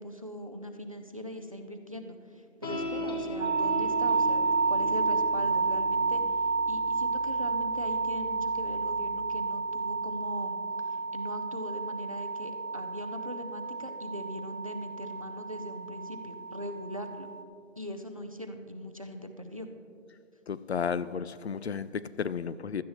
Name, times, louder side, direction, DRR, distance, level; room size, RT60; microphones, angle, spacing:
voice 1, 0.0-4.4 4.7-6.2 6.7-10.9 11.1-17.3 17.8-19.7, equal, 30° right, 7 dB, 0.4 m, -40 dB
sound 1, 2.6-9.3, equal, 20° left, 0.7 m, -39 dB
sound 2, 3.4-17.4, right 4 dB, 90° right, 0.9 m, -30 dB
voice 2, 20.5-22.8, left 6 dB, 60° left, 16 dB, 0.4 m, -33 dB
16.0 x 12.5 x 3.0 m, 2.5 s
hypercardioid pair, 165°, 38 cm